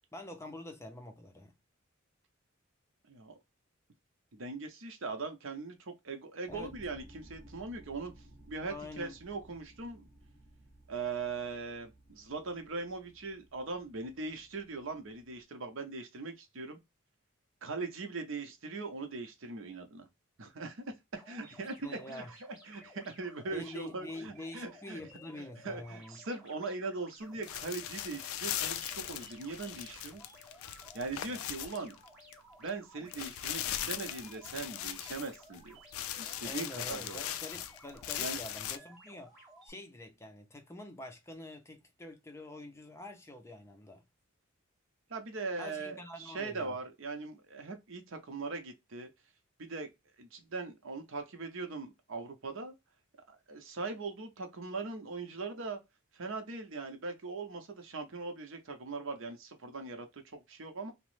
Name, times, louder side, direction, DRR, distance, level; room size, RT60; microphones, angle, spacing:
voice 1, 0.1-1.5 6.5-6.7 8.7-9.2 21.8-22.3 23.5-26.2 36.4-39.4 39.6-44.0 45.6-46.8, left 1 dB, 15° left, 0.5 m, -46 dB
voice 2, 3.1-3.4 4.3-8.1 8.5-10.1 10.9-16.8 17.6-20.1 20.4-20.8 21.1-22.2 22.7-25.0 25.6-30.2 30.9-31.9 32.6-35.8 36.2-37.3 38.2-38.4 45.1-49.1 49.6-49.9 50.2-52.7 53.3-55.8 56.1-60.9, right 3 dB, 65° right, 0.7 m, -40 dB
sound 1, 6.5-15.4, right 1 dB, 25° right, 0.8 m, -58 dB
sound 2, 21.1-39.7, equal, 5° right, 1.0 m, -56 dB
sound 3, 27.4-32.3 32.7-32.8 33.1-35.6 35.9-38.8, left 11 dB, 80° left, 0.3 m, -39 dB
2.9 x 2.0 x 3.1 m
head